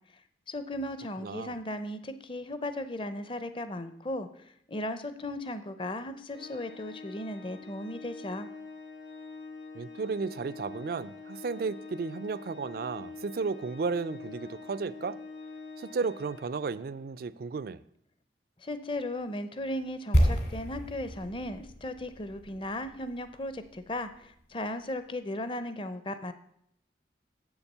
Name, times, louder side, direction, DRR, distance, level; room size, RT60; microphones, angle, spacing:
voice 1, 0.5-4.3 4.7-8.5 18.6-26.3, left 1 dB, 30° left, 0.6 m, -36 dB
voice 2, 1.2-1.6 9.7-15.2 15.8-17.8, right 4 dB, 55° right, 0.4 m, -34 dB
Organ, 6.3-17.1, left 4 dB, 75° left, 1.3 m, -45 dB
sound 1, 20.1-24.1 24.3-24.4, equal, 60° left, 2.2 m, -30 dB
7.5 x 7.1 x 6.6 m
head